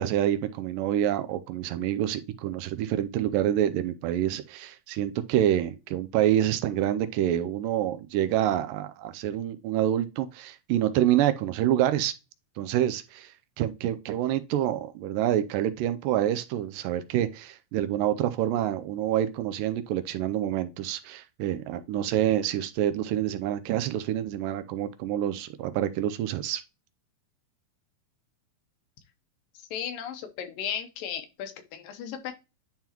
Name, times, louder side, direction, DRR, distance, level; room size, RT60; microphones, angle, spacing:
voice 1, 0.0-12.1 12.6-26.6, right 11 dB, 80° right, 2.1 m, -27 dB
voice 2, 29.7-32.3, left 9 dB, 80° left, 2.6 m, -35 dB
10.5 x 3.7 x 2.9 m
omnidirectional pair, 4.1 m